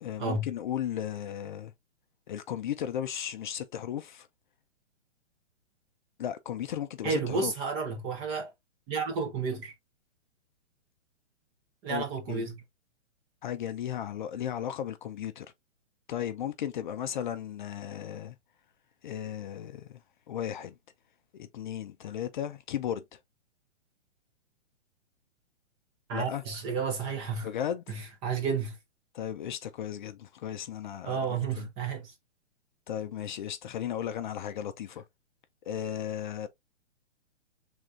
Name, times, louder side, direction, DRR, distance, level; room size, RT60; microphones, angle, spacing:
voice 1, 0.0-1.7 2.3-4.3 6.2-7.5 11.9-12.4 13.4-15.5 16.1-18.4 19.0-20.0 20.3-20.7 21.3-23.2 26.1-26.4 27.4-28.0 29.1-31.7 32.9-35.0 35.7-36.5, left 10 dB, 45° left, 0.5 m, -35 dB
voice 2, 7.0-8.5 8.9-9.7 11.8-12.6 26.1-27.5 27.9-28.8 31.0-32.1, right 5 dB, 15° right, 0.5 m, -31 dB
4.8 x 3.5 x 2.4 m
hypercardioid pair, 140°, 36 cm